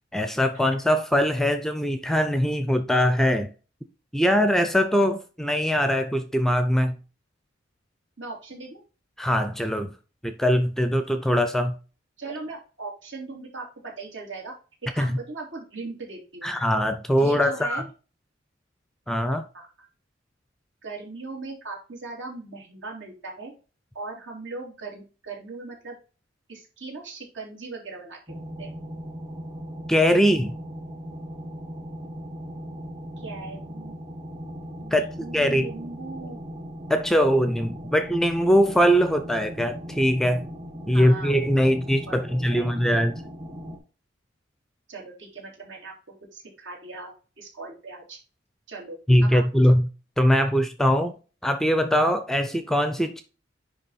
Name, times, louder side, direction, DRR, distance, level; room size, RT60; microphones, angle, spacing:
voice 1, 0.1-3.5 4.1-7.0 9.2-9.9 10.2-11.8 15.0-15.2 16.4-17.8 19.1-19.5 29.9-30.5 34.9-35.7 36.9-40.4 40.9-43.1 49.1-49.9 50.2-51.2 51.4-53.2, equal, ahead, 0.5 m, -22 dB
voice 2, 8.2-8.8 12.2-14.5 14.9-16.5 17.2-17.9 19.5-19.9 20.8-23.5 23.9-25.9 26.5-28.2 28.6-28.7 33.2-33.9 34.8-36.4 40.9-41.3 41.6-41.7 42.1-42.7 44.9-45.9 46.3-48.2 48.7-49.4, right 3 dB, 70° right, 3.3 m, -39 dB
sound 1, 28.3-43.8, equal, 25° right, 1.7 m, -38 dB
10.0 x 3.4 x 4.1 m
head